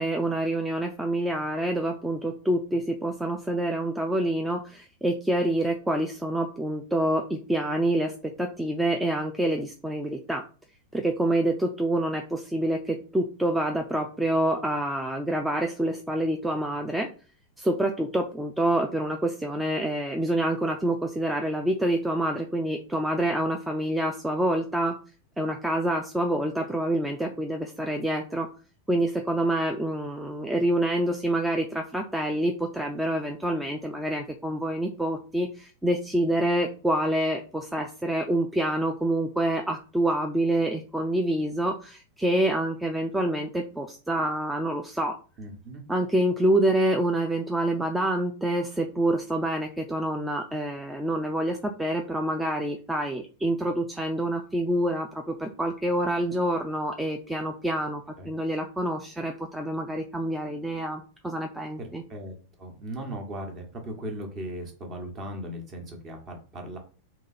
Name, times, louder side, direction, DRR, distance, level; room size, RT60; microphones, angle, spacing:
voice 1, 0.0-8.1 8.4-10.4 10.9-17.1 17.6-24.9 25.4-28.5 28.9-45.1 45.9-62.0, right 1 dB, 5° right, 3 dB, 0.5 m, -27 dB
voice 2, 45.4-45.8 58.2-58.3 61.8-66.8, right 1 dB, 30° right, 3 dB, 1.3 m, -38 dB
3.7 x 3.0 x 4.2 m, 0.37 s
figure-of-eight pair, 90°, 0 cm